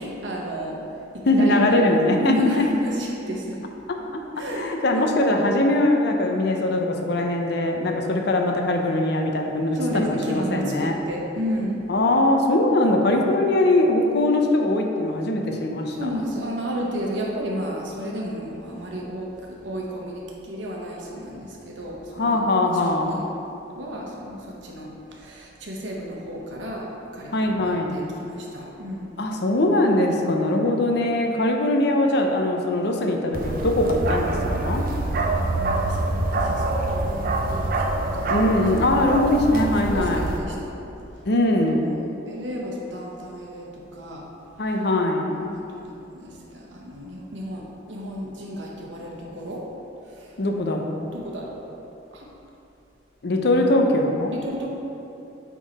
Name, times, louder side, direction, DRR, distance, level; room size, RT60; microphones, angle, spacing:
voice 1, 0.0-1.9 2.2-3.6 4.4-5.0 9.7-11.9 15.9-23.3 23.7-26.9 27.1-29.1 35.2-38.5 39.4-40.7 41.7-44.2 45.3-49.6 50.0-50.4 51.1-51.6 52.1-52.3 54.3-54.7, equal, 80° right, -2 dB, 1.1 m, -32 dB
voice 2, 1.3-2.6 3.9-4.2 4.6-11.0 11.9-16.1 22.2-23.2 27.3-28.0 29.2-34.9 38.3-40.3 41.3-41.9 44.6-45.3 50.4-51.1 53.2-54.3, left 1 dB, 60° left, 3 dB, 0.6 m, -21 dB
Bark, 33.3-40.4, right 2 dB, 50° right, 0.5 m, -25 dB
8.4 x 3.8 x 4.1 m, 2.8 s
head